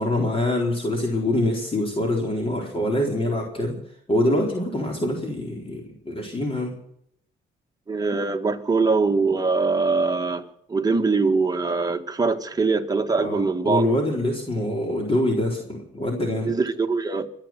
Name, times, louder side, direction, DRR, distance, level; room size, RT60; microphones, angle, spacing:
voice 1, 0.0-3.8 4.1-6.7 13.2-16.5, left 1 dB, 30° left, 4.0 m, -25 dB
voice 2, 7.9-13.8 16.5-17.3, right 4 dB, 20° right, 1.9 m, -23 dB
25.0 x 9.1 x 6.0 m
cardioid pair, 90°, 20 cm